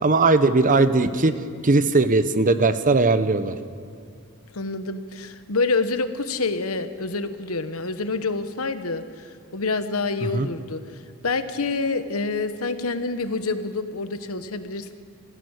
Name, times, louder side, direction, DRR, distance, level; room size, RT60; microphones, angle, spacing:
voice 1, 0.0-1.3 1.6-3.5 10.3-10.5, right 3 dB, 40° right, 11 dB, 0.9 m, -19 dB
voice 2, 4.5-14.9, left 3 dB, 70° left, 10 dB, 1.2 m, -27 dB
25.5 x 16.0 x 6.5 m, 2.3 s
head